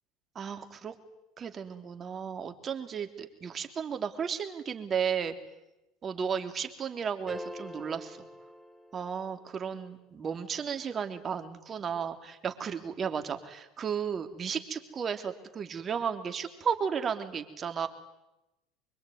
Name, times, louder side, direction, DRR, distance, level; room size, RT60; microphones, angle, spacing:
voice 1, 0.3-0.9 1.4-5.3 6.0-8.2 8.9-17.9, right 7 dB, 35° right, 7 dB, 3.3 m, -34 dB
sound 1, 7.3-9.5, left 1 dB, 5° left, 4.1 m, -44 dB
25.0 x 23.5 x 9.5 m, 0.95 s
hypercardioid pair, 85°, 0 cm